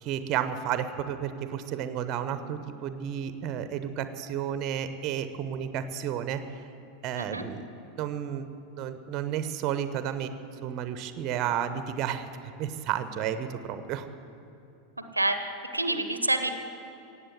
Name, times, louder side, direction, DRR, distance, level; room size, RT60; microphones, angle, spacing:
voice 1, 0.0-6.4 7.0-7.7 8.0-8.4 8.8-10.3 10.6-12.3 12.6-14.1, right 9 dB, 40° right, 11 dB, 0.9 m, -32 dB
voice 2, 15.1-16.5, right 2 dB, 85° right, 9 dB, 0.8 m, -28 dB
17.0 x 8.3 x 8.0 m, 2.8 s
figure-of-eight pair, 85°, 0 cm